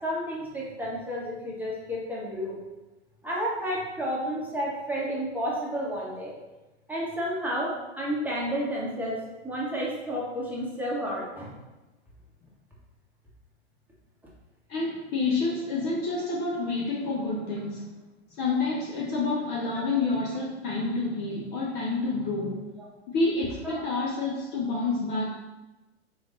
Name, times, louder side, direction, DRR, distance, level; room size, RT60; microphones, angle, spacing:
voice 1, 0.0-2.6 3.2-6.3 6.9-11.5 23.6-23.8, equal, 5° right, -6 dB, 1.2 m, -31 dB
voice 2, 14.7-17.9 18.4-22.7 23.1-25.3, left 3 dB, 30° left, -3 dB, 0.7 m, -28 dB
3.9 x 3.3 x 4.0 m, 1.1 s
figure-of-eight pair, 105°, 35 cm